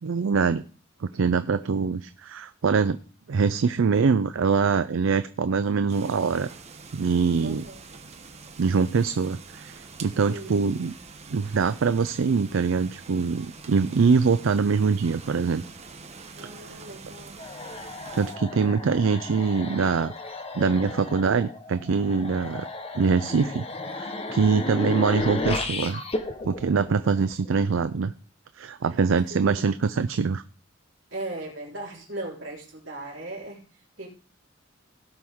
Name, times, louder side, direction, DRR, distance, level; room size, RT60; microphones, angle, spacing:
voice 1, 0.0-0.6 1.0-3.0 3.3-6.5 6.9-7.6 8.6-10.9 11.3-15.6 18.2-20.1 20.5-22.7 22.9-23.6 24.0-26.0 26.4-28.1 28.6-30.4, right 5 dB, 85° right, 12 dB, 0.5 m, -23 dB
sound 1, 5.9-18.4, right 4 dB, 35° right, 1.1 m, -45 dB
voice 2, 7.4-8.0 10.2-10.6 16.4-17.4 18.6-18.9 29.3-29.6 31.1-34.1, right 2 dB, 65° right, -3 dB, 3.9 m, -38 dB
sound 2, 17.4-27.6, left 2 dB, 30° left, 1.0 m, -34 dB
17.5 x 6.1 x 3.6 m, 0.38 s
head